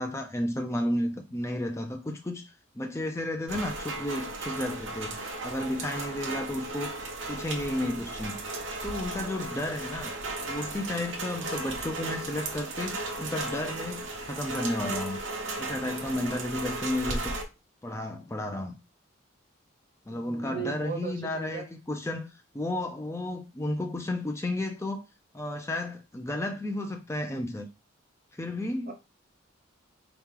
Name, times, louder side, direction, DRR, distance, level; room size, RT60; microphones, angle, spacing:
voice 1, 0.0-7.0 7.3-8.4 8.8-10.1 10.5-15.2 15.6-17.3 17.8-18.7 20.1-25.0 25.3-27.7 28.3-28.9, left 1 dB, 15° left, 0.4 m, -32 dB
Rain, 3.5-17.4, right 2 dB, 65° right, 1.0 m, -35 dB
voice 2, 20.1-21.7 28.9-29.0, right 5 dB, 45° right, 1.0 m, -37 dB
4.6 x 2.9 x 3.7 m
head